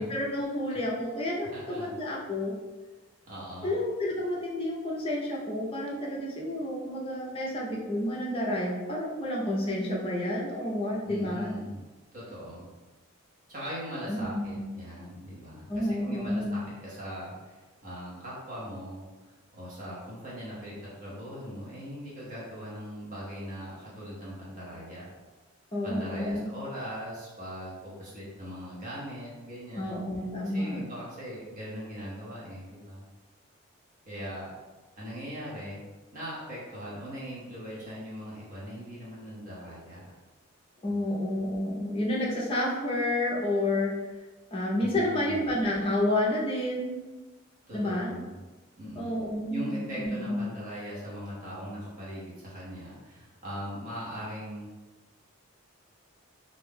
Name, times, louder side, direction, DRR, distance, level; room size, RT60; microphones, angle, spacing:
voice 1, 0.0-2.5 3.6-11.5 14.1-14.6 15.7-16.6 25.7-26.5 29.8-30.8 40.8-43.9 44.5-47.0 47.7-48.1 49.0-50.5, left 1 dB, 25° left, -3 dB, 0.5 m, -30 dB
voice 2, 1.5-1.9 3.3-3.7 11.0-11.8 12.1-12.7 13.5-25.1 25.8-30.0 30.4-33.1 34.1-34.5 35.0-35.8 36.1-40.1 44.8-45.4 47.7-48.4 48.8-49.2 49.5-54.7, equal, 40° right, -7 dB, 0.9 m, -40 dB
2.6 x 2.2 x 3.5 m, 1.2 s
head